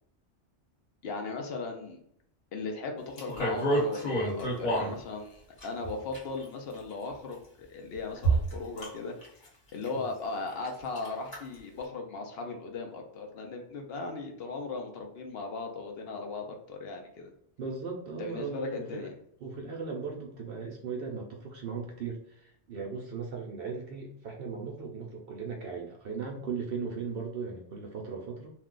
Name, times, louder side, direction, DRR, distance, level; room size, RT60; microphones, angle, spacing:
voice 1, 1.0-2.0 2.5-9.2 9.7-17.3 18.2-19.1, left 3 dB, 60° left, 3 dB, 0.8 m, -37 dB
sound 1, 3.2-4.9 5.6-6.4 7.3-7.4 8.2-8.9 9.2-9.5 9.8-9.9 10.3-10.7 10.9-11.4 11.8-11.9, right 2 dB, 45° left, 1.1 m, -28 dB
voice 2, 17.6-19.1 19.4-28.5, right 5 dB, 65° right, 1 dB, 0.7 m, -37 dB
2.5 x 2.2 x 3.6 m, 0.69 s
omnidirectional pair, 1.2 m